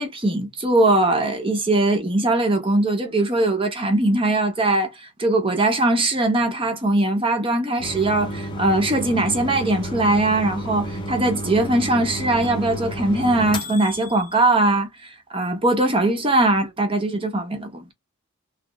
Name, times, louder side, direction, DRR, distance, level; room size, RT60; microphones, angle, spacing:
voice 1, 0.0-17.9, right 2 dB, 25° right, 0.8 m, -21 dB
sound 1, 7.8-14.3, equal, 20° left, 0.7 m, -31 dB
3.0 x 2.8 x 2.2 m
head